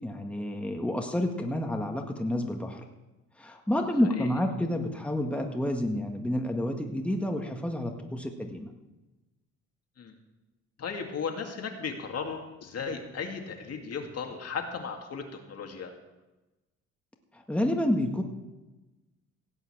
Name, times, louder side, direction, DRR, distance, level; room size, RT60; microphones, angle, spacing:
voice 1, 0.0-2.8 3.4-8.7 17.3-18.2, left 1 dB, 5° left, 3 dB, 1.7 m, -29 dB
voice 2, 3.7-4.3 10.0-10.1 10.8-15.9, left 5 dB, 55° left, 3 dB, 2.3 m, -36 dB
17.0 x 5.7 x 8.6 m, 1.1 s
cardioid pair, 90°, 30 cm